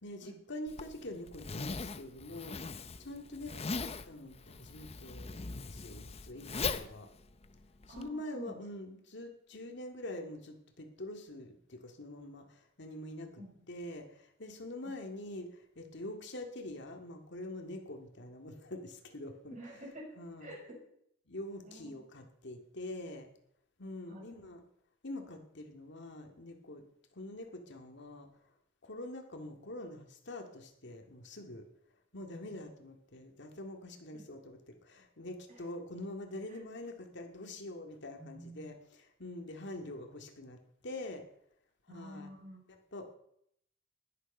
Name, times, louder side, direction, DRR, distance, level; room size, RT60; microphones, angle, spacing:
voice 1, 0.0-7.1 7.9-13.4 13.7-19.8 20.2-20.5 21.3-23.3 23.8-24.6 25.0-26.8 27.1-28.3 28.8-31.7 32.1-40.6 40.8-41.2 41.9-42.3 42.9-43.1, left 1 dB, 65° left, 4 dB, 2.1 m, -45 dB
Zipper (clothing), 0.7-8.1, left 4 dB, 30° left, 0.7 m, -40 dB
voice 2, 7.9-8.6 13.4-13.7 14.8-14.9 19.5-20.8 21.6-22.0 24.1-24.3 32.3-32.5 34.1-34.3 35.5-35.7 36.5-36.6 38.2-38.7 41.9-42.6, right 1 dB, 40° right, -1 dB, 6.2 m, -49 dB
20.0 x 10.0 x 5.4 m, 0.74 s
head